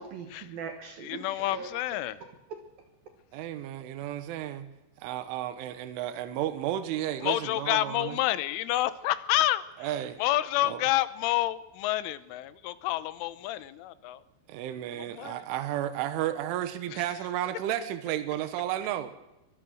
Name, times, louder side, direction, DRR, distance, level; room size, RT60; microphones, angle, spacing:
voice 1, 0.0-1.8 2.2-2.6, right 5 dB, 65° right, 2.7 m, -41 dB
voice 2, 1.0-2.2 7.2-9.6 10.2-14.2 15.0-15.3, left 15 dB, 90° left, 3.4 m, -28 dB
voice 3, 3.3-4.7 5.0-8.2 9.8-10.2 10.6-10.8 14.5-19.1, right 12 dB, 85° right, 3.6 m, -33 dB
23.5 x 22.0 x 6.4 m
omnidirectional pair, 5.4 m